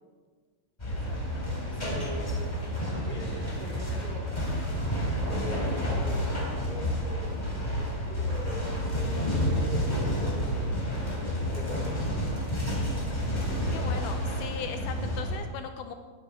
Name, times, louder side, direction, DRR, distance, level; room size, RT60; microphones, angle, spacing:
sound 1, 0.8-15.4, equal, 15° left, 2.8 m, -30 dB
voice 1, 0.9-1.5 3.9-4.1 13.7-15.9, left 7 dB, 80° left, 7 dB, 2.1 m, -39 dB
voice 2, 1.6-4.3 5.3-11.1 11.4-12.4, equal, 15° right, -3 dB, 2.8 m, -44 dB
19.0 x 9.8 x 3.7 m, 1.5 s
omnidirectional pair, 3.8 m